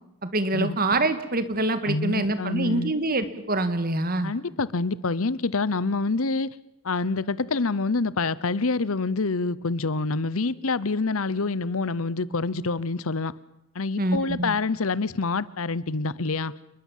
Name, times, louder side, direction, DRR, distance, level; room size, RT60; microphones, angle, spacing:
voice 1, 0.2-4.3 14.0-14.5, right 2 dB, 40° right, 11 dB, 2.0 m, -25 dB
voice 2, 1.9-2.9 4.2-6.5 6.8-13.3 13.7-16.5, left 3 dB, 70° left, 19 dB, 0.9 m, -26 dB
29.0 x 21.0 x 7.5 m, 0.85 s
head